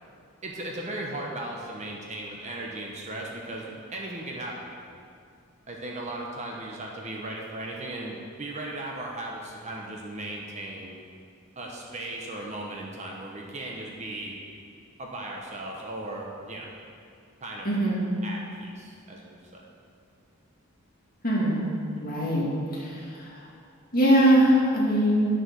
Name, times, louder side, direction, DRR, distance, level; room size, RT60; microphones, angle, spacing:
voice 1, 0.4-4.7 5.7-11.0 11.6-14.4 15.0-16.7 17.4-17.7 18.2-19.6, right 1 dB, 30° right, -1 dB, 1.0 m, -37 dB
voice 2, 17.6-18.0 21.2-21.6 22.0-22.4 22.7-23.4 23.9-25.2, equal, 40° left, -6 dB, 2.4 m, -22 dB
9.7 x 6.5 x 6.3 m, 2.4 s
head